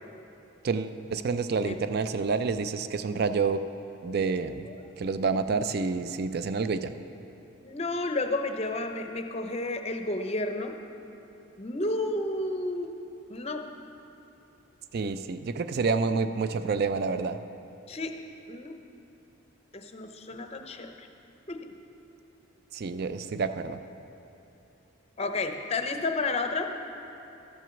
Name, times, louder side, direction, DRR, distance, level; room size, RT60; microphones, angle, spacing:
voice 1, 0.6-3.6 4.0-4.7 5.0-6.9 14.9-17.4 22.7-23.8, right 4 dB, 45° right, 11 dB, 0.4 m, -28 dB
voice 2, 7.6-10.8 11.6-12.9 13.3-13.6 17.9-18.1 18.5-18.8 19.7-21.1 21.5-21.7 25.2-26.7, left 2 dB, 30° left, 5 dB, 0.5 m, -31 dB
13.0 x 6.1 x 7.0 m, 3.0 s
head